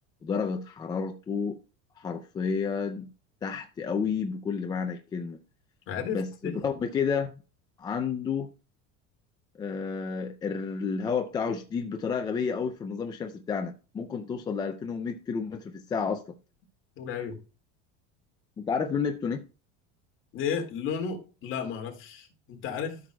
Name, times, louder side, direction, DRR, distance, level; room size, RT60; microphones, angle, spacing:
voice 1, 0.2-1.6 2.0-3.1 3.4-5.4 6.1-7.4 7.8-8.5 9.6-16.2 18.6-19.4, left 6 dB, 15° left, 0.3 m, -31 dB
voice 2, 5.9-6.6 17.0-17.4 20.3-23.0, left 7 dB, 35° left, 2.0 m, -33 dB
13.0 x 6.1 x 2.2 m
cardioid pair, 175°, 35 cm